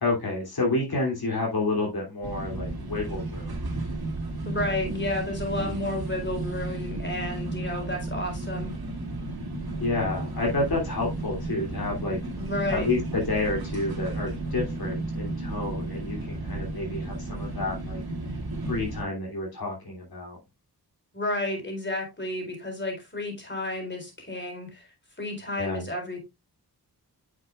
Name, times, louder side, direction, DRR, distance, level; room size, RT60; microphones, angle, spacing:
voice 1, 0.0-3.6 5.6-5.8 9.8-12.2 12.7-18.0 18.6-20.4 25.6-25.9, left 2 dB, 70° left, -2 dB, 3.0 m, -29 dB
sound 1, 2.2-19.0, right 2 dB, 70° right, 2.6 m, -33 dB
voice 2, 4.5-8.7 12.4-12.9 21.1-24.8 25.2-26.2, left 1 dB, 30° left, 1 dB, 4.1 m, -31 dB
9.6 x 6.6 x 2.4 m, 0.22 s
wide cardioid pair, 75°, 38 cm